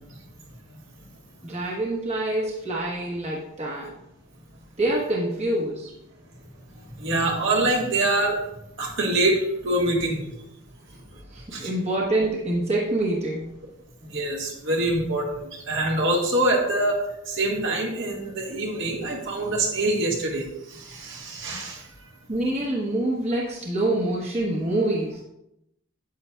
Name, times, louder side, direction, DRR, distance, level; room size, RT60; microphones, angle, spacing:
voice 1, 1.4-3.9 4.8-5.9 11.3-13.5 22.3-25.2, right 1 dB, 30° right, -3 dB, 1.1 m, -26 dB
voice 2, 7.0-8.4 8.8-10.2 11.5-11.7 14.0-17.0 17.3-20.4 20.7-21.8, right 2 dB, 65° right, -1 dB, 1.7 m, -25 dB
9.4 x 7.5 x 2.3 m, 0.83 s
head